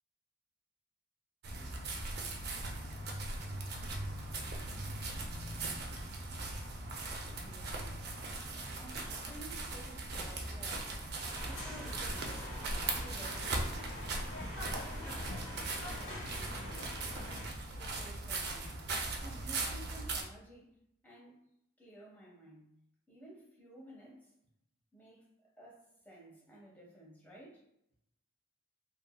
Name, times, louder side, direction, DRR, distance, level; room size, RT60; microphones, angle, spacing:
sound 1, 1.4-20.2, right 2 dB, 50° right, 0.4 m, -39 dB
voice 1, 7.4-8.0 8.7-11.0 11.4-12.4 12.9-16.8 17.2-18.8 19.2-20.8 21.0-21.5 21.8-22.7 23.1-24.4 24.9-27.7, right 1 dB, 10° left, -4 dB, 0.7 m, -54 dB
sound 2, 11.3-17.5, left 1 dB, 65° left, 0.9 m, -45 dB
2.7 x 2.6 x 2.2 m, 0.77 s
head